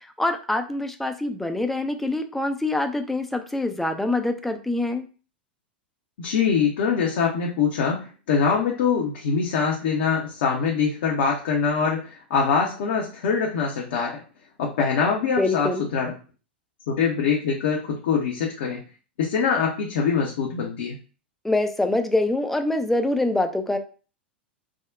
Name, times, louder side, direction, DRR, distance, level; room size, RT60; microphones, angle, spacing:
voice 1, 0.2-5.1 15.4-15.8 21.4-23.8, left 2 dB, 5° left, 6 dB, 0.3 m, -25 dB
voice 2, 6.2-14.2 14.6-16.1 16.9-18.8 19.2-21.0, left 6 dB, 55° left, -1 dB, 0.6 m, -23 dB
3.6 x 2.1 x 2.4 m, 0.36 s
figure-of-eight pair, 90°, 6 cm